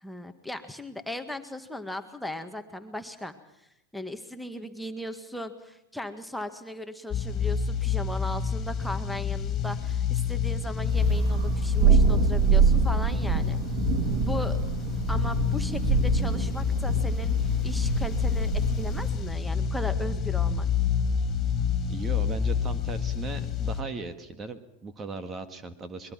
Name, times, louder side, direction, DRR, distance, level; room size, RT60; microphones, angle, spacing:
voice 1, 0.0-3.3 3.9-13.6 14.2-14.6 15.1-17.3 17.6-20.7, left 1 dB, ahead, 6 dB, 1.7 m, -37 dB
sound 1, 7.1-23.8, left 6 dB, 30° left, 3.2 m, -27 dB
Thunder, 10.8-19.2, right 7 dB, 50° right, 1.9 m, -26 dB
voice 2, 21.9-26.1, right 4 dB, 25° right, 10 dB, 1.8 m, -38 dB
22.5 x 21.5 x 6.0 m, 0.86 s
hypercardioid pair, 105°, 0 cm